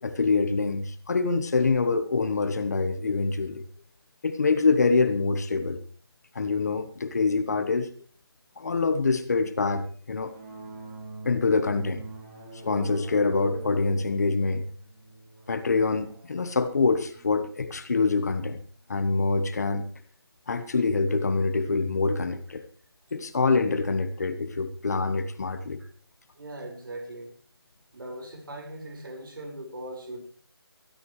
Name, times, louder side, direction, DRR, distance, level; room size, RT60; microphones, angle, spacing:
voice 1, 0.0-3.6 4.2-5.8 6.3-7.9 8.6-10.3 11.2-12.0 12.6-14.6 15.5-18.6 18.9-19.9 20.5-22.6 23.1-25.8, left 4 dB, 40° left, 1.3 m, -25 dB
sound 1, 10.2-18.3, right 3 dB, 20° right, 2.4 m, -44 dB
voice 2, 26.4-27.4 27.9-30.2, right 1 dB, 55° right, 5.1 m, -39 dB
22.5 x 13.0 x 3.2 m
figure-of-eight pair, 175°, 13 cm